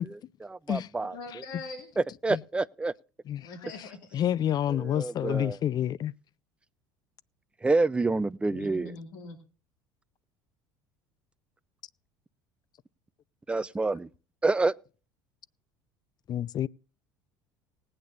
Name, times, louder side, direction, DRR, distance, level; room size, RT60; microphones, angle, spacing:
voice 1, 0.4-1.2 2.2-2.9 4.7-5.6 7.6-8.9 13.5-14.1 14.4-14.7, right 3 dB, 10° right, 0.5 m, -27 dB
voice 2, 1.1-1.9 3.4-4.2 8.5-9.4, left 3 dB, 75° left, 2.2 m, -42 dB
voice 3, 4.1-6.1 16.3-16.7, left 11 dB, 40° left, 0.5 m, -28 dB
19.5 x 8.7 x 2.6 m
hypercardioid pair, 75°, 10 cm